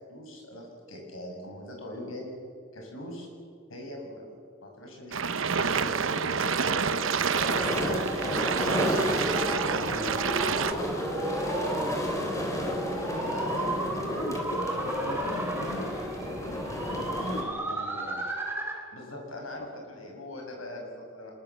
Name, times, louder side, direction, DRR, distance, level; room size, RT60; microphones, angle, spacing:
voice 1, 0.1-2.3 2.7-3.3 3.7-4.2 4.6-7.2 7.6-9.0 9.9-13.6 18.9-21.3, left 1 dB, 80° left, 1 dB, 7.3 m, -41 dB
sound 1, 5.1-10.7, right 6 dB, 75° right, 1.0 m, -28 dB
sound 2, 6.5-18.9, right 1 dB, 10° right, 3.3 m, -35 dB
sound 3, 7.3-17.4, left 1 dB, 15° left, 3.7 m, -32 dB
voice 2, 13.4-18.3 19.7-19.8, left 1 dB, 60° left, 4 dB, 2.2 m, -40 dB
25.5 x 21.5 x 7.6 m, 2.2 s
head